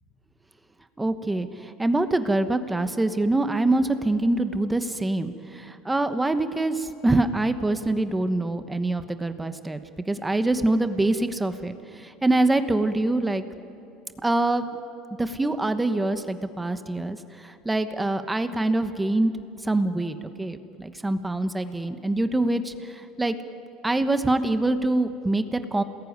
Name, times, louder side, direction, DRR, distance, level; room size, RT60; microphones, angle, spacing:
voice 1, 1.0-9.8 10.1-13.5 14.2-14.7 15.2-19.3 19.6-23.4 23.8-25.8, right 2 dB, 10° right, 9 dB, 1.1 m, -25 dB
27.5 x 20.0 x 9.5 m, 2.7 s
cardioid pair, 130°, 0 cm